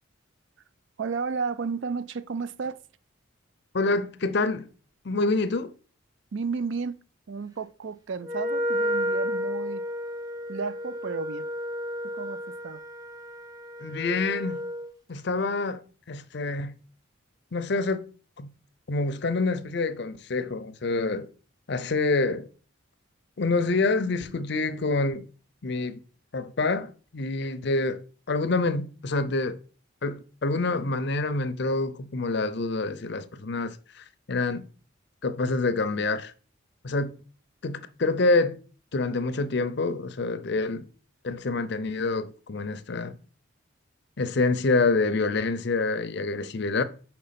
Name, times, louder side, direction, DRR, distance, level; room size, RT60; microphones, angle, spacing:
voice 1, 1.0-2.8 6.3-7.0 7.3-9.8 10.5-11.5 12.0-12.8, right 5 dB, 60° right, 0.4 m, -32 dB
voice 2, 3.7-4.7 5.0-5.7 13.8-14.6 15.1-15.8 16.1-16.7 17.5-18.0 18.4-18.5 18.9-21.3 21.7-22.5 23.4-25.3 25.6-26.0 26.3-28.0 28.3-29.6 30.0-34.6 35.2-36.3 36.8-37.1 37.6-38.6 38.9-40.9 41.2-43.2 44.2-46.8, left 3 dB, 55° left, 0.6 m, -27 dB
Wind instrument woodwind instrument, 8.2-14.9, equal, 15° right, 0.7 m, -32 dB
5.2 x 4.4 x 5.7 m
head